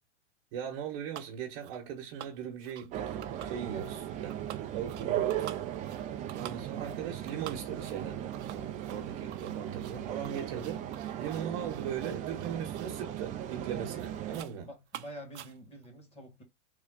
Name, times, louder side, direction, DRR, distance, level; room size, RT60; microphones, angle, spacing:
voice 1, 0.5-3.2 3.4-4.3 4.7-5.5 6.3-8.2 8.5-10.8 11.2-14.7, right 8 dB, 50° right, 1.2 m, -39 dB
sound 1, 1.1-1.3 1.6-1.9 2.2-2.9 3.2-4.0 4.3-13.1 13.4-13.7 14.0-14.6 14.9-15.9, right 12 dB, 70° right, 0.6 m, -48 dB
sound 2, 2.9-14.4, right 11 dB, 20° right, 0.4 m, -37 dB
voice 2, 3.7-4.1 14.6-16.4, right 1 dB, 15° left, 1.4 m, -47 dB
3.7 x 2.2 x 3.6 m
hypercardioid pair, 130°, 36 cm